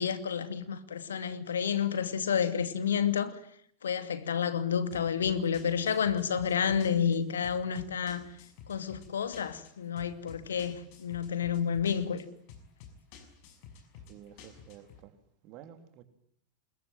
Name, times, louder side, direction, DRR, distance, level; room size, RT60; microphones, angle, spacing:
voice 1, 0.0-3.3 3.8-8.2 8.7-12.2, left 7 dB, 65° left, 2.4 m, -30 dB
sound 1, 4.9-15.0, left 6 dB, 45° left, 6.0 m, -52 dB
voice 2, 14.1-15.1 15.4-16.0, right 10 dB, 40° right, 3.5 m, -51 dB
27.0 x 22.0 x 9.3 m
figure-of-eight pair, 90°, 0 cm